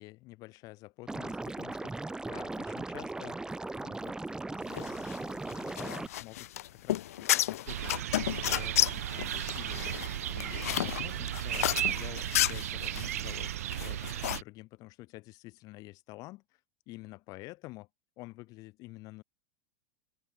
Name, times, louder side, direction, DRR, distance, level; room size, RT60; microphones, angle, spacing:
voice 1, 0.0-3.4 3.7-4.2 4.5-10.0 10.3-16.6 16.9-17.9 18.2-19.2, left 20 dB, 50° left, 4.8 m, -49 dB
Liquid, 1.1-6.1, right 2 dB, 10° right, 2.1 m, -38 dB
sound 1, 4.7-14.4, left 13 dB, 75° left, 1.5 m, -32 dB
sound 2, 7.7-14.4, right 13 dB, 75° right, 1.6 m, -35 dB
open air
hypercardioid pair, 100°, 8 cm